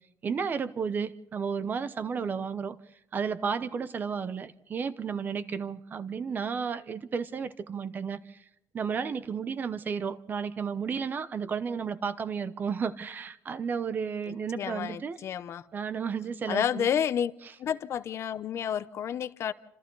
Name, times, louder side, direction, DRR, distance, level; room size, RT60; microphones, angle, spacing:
voice 1, 0.2-2.8 3.1-8.4 8.7-15.2 15.7-16.9, right 6 dB, 30° right, 0.9 m, -32 dB
voice 2, 14.3-15.6 16.5-17.3 17.6-19.5, left 9 dB, 45° left, 0.8 m, -30 dB
29.0 x 26.5 x 4.0 m
cardioid pair, 165°, 6 cm